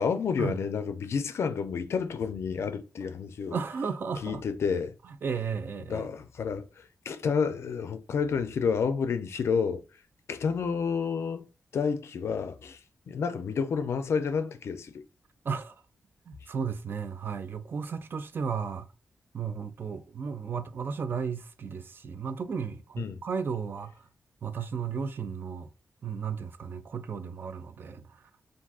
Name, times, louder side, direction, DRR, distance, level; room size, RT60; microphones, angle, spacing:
voice 1, 0.0-3.6 4.2-4.9 5.9-6.6 7.1-9.8 10.3-11.4 11.7-12.8 13.1-15.0 23.0-23.2, left 6 dB, 65° left, 0.4 m, -30 dB
voice 2, 3.5-4.4 5.2-6.1 15.4-15.7 16.3-18.9 19.3-24.0 24.4-25.7 26.0-28.0, right 6 dB, 45° right, 0.3 m, -34 dB
3.6 x 2.5 x 2.3 m
wide cardioid pair, 125°, 5 cm